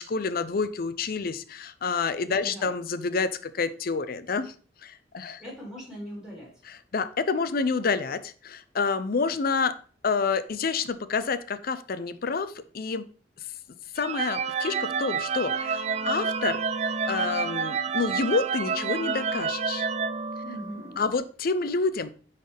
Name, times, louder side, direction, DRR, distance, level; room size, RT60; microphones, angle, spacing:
voice 1, 0.0-4.5 4.8-5.4 6.9-9.7 10.0-13.0 13.9-19.9 21.0-22.1, left 4 dB, 55° left, 13 dB, 0.5 m, -28 dB
voice 2, 2.4-2.7 5.4-6.5 20.4-21.1, equal, 5° right, -5 dB, 3.6 m, -40 dB
sound 1, 14.0-21.0, right 5 dB, 35° right, 0.3 m, -29 dB
9.3 x 4.0 x 3.4 m, 0.40 s
head